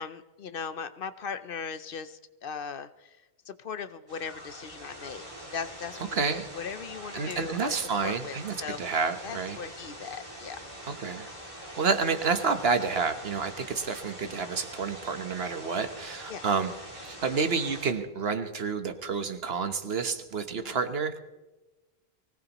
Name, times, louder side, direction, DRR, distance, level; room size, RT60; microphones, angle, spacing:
voice 1, 0.0-3.1 3.5-5.2 5.5-7.8 8.0-9.0 9.2-10.6 16.3-16.5 20.6-20.8, left 6 dB, 60° left, 12 dB, 0.8 m, -38 dB
sound 1, 4.1-17.9, equal, 30° right, 2.6 m, -44 dB
voice 2, 6.1-6.5 7.1-9.6 10.9-11.3 11.8-21.2, right 5 dB, 65° right, 8 dB, 1.3 m, -29 dB
24.0 x 17.5 x 3.0 m, 1.1 s
omnidirectional pair, 1.1 m